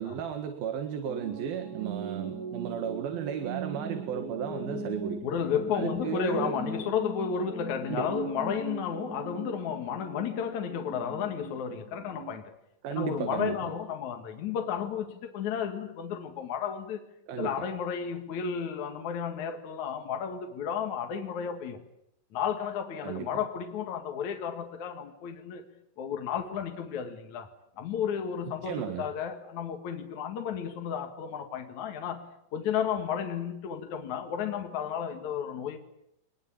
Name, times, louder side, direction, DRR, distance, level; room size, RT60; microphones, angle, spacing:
voice 1, 0.0-5.2 5.7-6.6 7.9-8.1 12.8-13.6 17.3-17.7 23.0-23.3 28.6-29.1, right 8 dB, 80° right, 3.5 m, -34 dB
sound 1, 1.1-12.4, right 3 dB, 55° right, 5.3 m, -39 dB
voice 2, 5.2-12.5 12.9-17.0 17.4-21.8 22.3-25.6 26.0-27.5 27.8-35.8, left 7 dB, 55° left, 3.0 m, -33 dB
24.0 x 21.0 x 8.7 m
omnidirectional pair, 4.2 m